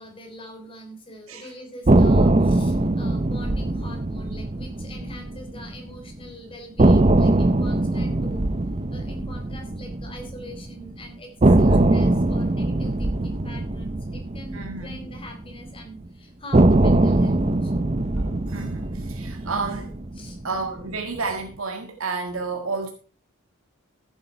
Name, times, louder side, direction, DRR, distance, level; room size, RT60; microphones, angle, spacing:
voice 1, 0.0-8.4 8.9-17.9 20.2-20.4, equal, 25° left, 4 dB, 3.5 m, -43 dB
sound 1, 1.9-5.9 6.2-6.3 6.8-10.9 11.4-15.8 16.5-20.9, right 2 dB, 30° right, 0.6 m, -21 dB
voice 2, 11.5-11.8 14.5-15.0 18.1-19.9 20.4-22.9, right 4 dB, 75° right, 3 dB, 1.7 m, -31 dB
14.5 x 8.1 x 4.5 m, 0.39 s
head